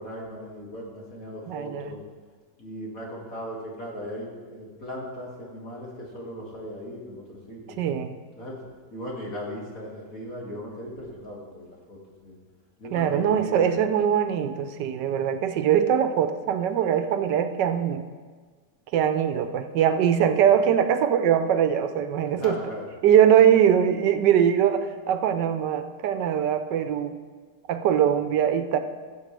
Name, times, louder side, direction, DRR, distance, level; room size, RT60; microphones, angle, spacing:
voice 1, 0.0-2.0 2.6-7.8 8.4-8.5 8.9-12.4 12.8-13.7 22.3-22.9, equal, 50° left, -4 dB, 2.8 m, -38 dB
voice 2, 1.5-1.9 7.8-8.1 12.9-18.0 18.9-22.6 23.0-27.2 27.7-28.8, right 9 dB, 85° right, 9 dB, 1.3 m, -22 dB
18.0 x 7.6 x 3.4 m, 1.5 s
omnidirectional pair, 1.8 m